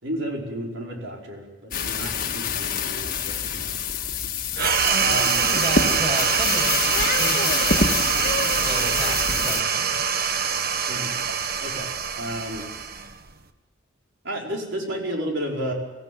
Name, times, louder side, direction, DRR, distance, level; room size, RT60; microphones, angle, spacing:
voice 1, 0.0-3.7 5.0-5.4 10.9-12.7 14.2-15.7, equal, 70° right, 0 dB, 5.2 m, -32 dB
sound 1, 1.7-9.6, left 5 dB, 45° left, 1.6 m, -27 dB
sound 2, 4.6-13.4, right 6 dB, 50° right, 1.4 m, -24 dB
voice 2, 4.8-8.3 8.5-10.0, right 1 dB, 35° right, 2 dB, 6.4 m, -33 dB
25.0 x 15.5 x 9.5 m, 1.1 s
head